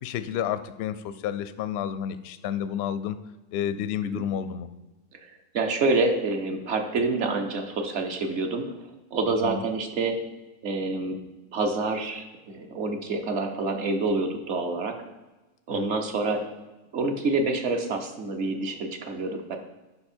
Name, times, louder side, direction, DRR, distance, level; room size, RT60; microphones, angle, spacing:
voice 1, 0.0-3.2 3.5-4.7 9.4-9.6 15.7-15.9, left 9 dB, 65° left, 13 dB, 0.6 m, -30 dB
voice 2, 5.2-8.8 9.1-10.2 10.6-11.2 11.5-14.9 15.7-16.4 16.9-19.6, right 3 dB, 55° right, 5 dB, 1.2 m, -27 dB
11.5 x 4.9 x 4.4 m, 1.1 s
omnidirectional pair, 1.5 m